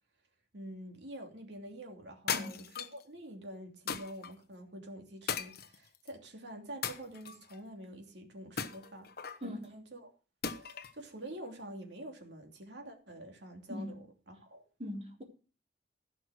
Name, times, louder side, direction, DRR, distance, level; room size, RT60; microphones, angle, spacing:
voice 1, 0.5-9.1 9.4-10.1 10.6-14.7, right 1 dB, 70° right, 2.9 m, -47 dB
sound 1, 2.3-3.0 3.9-4.3 5.3-6.1 6.8-7.6 8.6-9.4 10.4-11.0, left 7 dB, 60° left, 1.1 m, -37 dB
voice 2, 9.4-9.7 13.7-14.0 14.8-15.2, left 1 dB, 35° right, 3.9 m, -40 dB
16.0 x 6.1 x 6.4 m
head